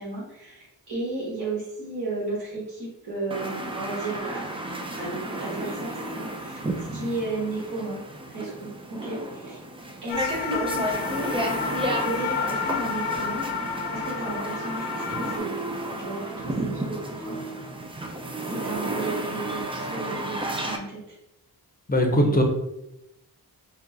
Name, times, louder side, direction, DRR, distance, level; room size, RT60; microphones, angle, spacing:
voice 1, 0.0-4.4 5.0-8.0 8.3-9.6 10.0-13.4 13.9-17.4 18.5-20.8 22.1-22.4, right 2 dB, 60° right, -6 dB, 1.6 m, -34 dB
sound 1, 3.3-20.8, right 1 dB, 15° right, 0.4 m, -32 dB
sound 2, 10.1-15.4, left 6 dB, 70° left, 0.6 m, -31 dB
voice 2, 21.9-22.4, equal, 20° left, 2 dB, 0.7 m, -20 dB
5.0 x 2.3 x 3.9 m, 0.87 s
wide cardioid pair, 150°, 40 cm